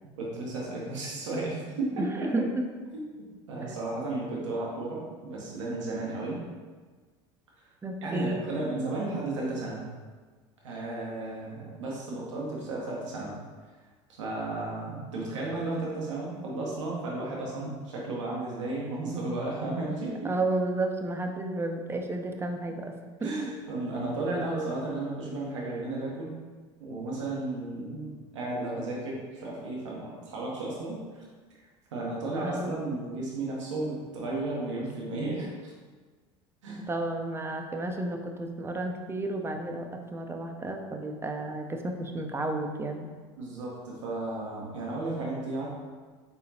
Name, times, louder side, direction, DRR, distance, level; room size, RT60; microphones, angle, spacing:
voice 1, 0.2-2.5 2.9-3.0 3.5-6.4 8.0-9.8 10.6-13.3 14.1-20.3 23.2-26.3 26.8-31.2 31.9-35.7 36.6-36.9 43.4-45.7, right 2 dB, 85° right, -4 dB, 0.9 m, -33 dB
voice 2, 2.0-2.6 7.8-8.4 20.2-22.9 23.2-23.3 32.4-32.7 36.9-43.1, right 2 dB, 15° right, 4 dB, 0.5 m, -32 dB
4.0 x 3.8 x 2.8 m, 1.4 s
hypercardioid pair, 80°, 15 cm